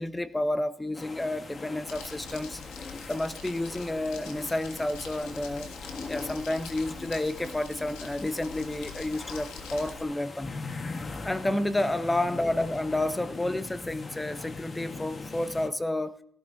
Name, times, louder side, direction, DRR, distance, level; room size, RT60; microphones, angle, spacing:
voice 1, 0.0-2.6 3.1-5.7 6.1-10.5 11.2-16.2, left 1 dB, 15° left, 0.7 m, -30 dB
sound 1, 0.9-15.7, left 3 dB, 35° left, 1.3 m, -41 dB
Crumpling crinkling, 1.9-10.0, left 5 dB, 85° left, 1.6 m, -45 dB
17.5 x 12.5 x 2.7 m
supercardioid pair, 75°, 0 cm